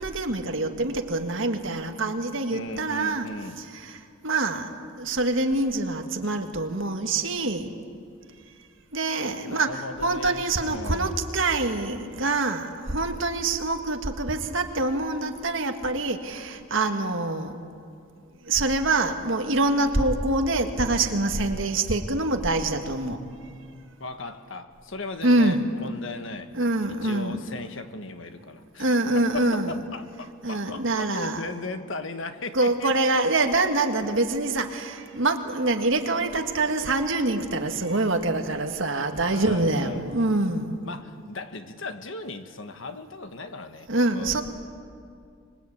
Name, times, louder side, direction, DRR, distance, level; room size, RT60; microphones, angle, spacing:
voice 1, 0.0-3.3 3.7-4.0 4.2-4.7 5.0-7.7 8.9-17.6 18.5-23.2 25.2-25.6 26.5-27.4 28.8-29.7 30.4-31.4 32.5-40.8 43.9-44.4, right 2 dB, 65° right, 5 dB, 1.8 m, -25 dB
voice 2, 2.5-3.6 9.4-11.2 24.0-26.5 26.9-28.9 29.1-33.0 33.3-33.4 34.0-34.1 39.2-40.1 40.8-43.9 44.1-44.4, left 3 dB, 65° left, 8 dB, 1.4 m, -37 dB
25.0 x 21.5 x 8.6 m, 2.3 s
head